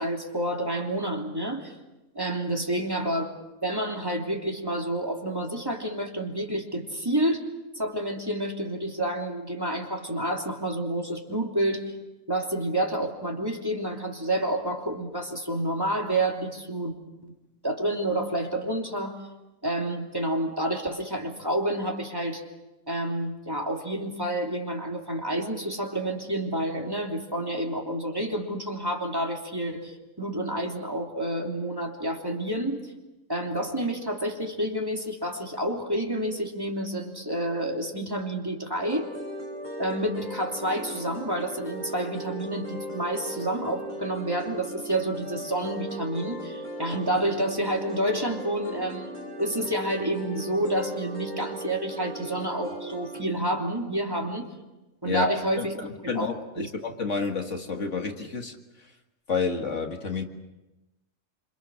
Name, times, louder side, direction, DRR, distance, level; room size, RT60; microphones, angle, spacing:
voice 1, 0.0-1.8 2.1-7.4 7.7-11.9 12.3-16.9 17.2-17.3 17.6-19.2 19.6-22.4 22.9-32.9 33.3-39.1 39.8-54.5 55.0-55.8 56.1-56.3 56.6-56.7, right 1 dB, 15° right, 0 dB, 3.1 m, -29 dB
sound 1, 38.8-53.2, right 1 dB, 35° left, 4.7 m, -37 dB
voice 2, 55.1-58.5 59.3-60.2, left 4 dB, 60° left, 4 dB, 2.1 m, -29 dB
27.0 x 27.0 x 6.4 m, 1.0 s
omnidirectional pair, 1.4 m